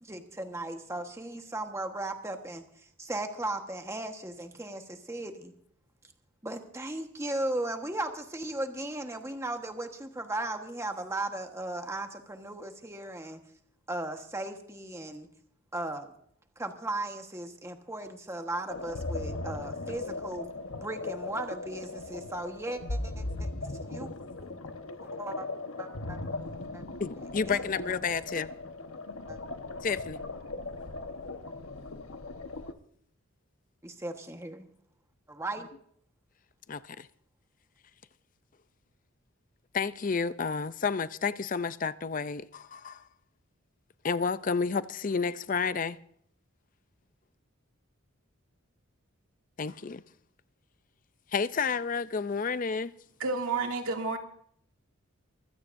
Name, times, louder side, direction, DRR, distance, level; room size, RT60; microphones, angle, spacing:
voice 1, 0.0-5.5 6.4-13.4 13.9-15.3 15.7-16.1 16.6-20.5 20.8-24.1 25.0-25.5 25.8-26.2 26.7-26.8 27.5-27.6 28.3-28.4 29.3-29.4 33.8-34.7 35.3-35.7, right 2 dB, 15° right, 1.3 m, -37 dB
sound 1, 18.7-32.7, left 2 dB, 70° left, 1.2 m, -38 dB
voice 2, 27.0-28.5 29.8-30.2 36.7-37.1 39.7-43.0 44.0-46.0 49.6-50.0 51.3-52.9, left 5 dB, 40° left, 0.5 m, -30 dB
voice 3, 53.2-54.2, right 4 dB, 75° right, 2.4 m, -30 dB
24.0 x 16.0 x 2.6 m
head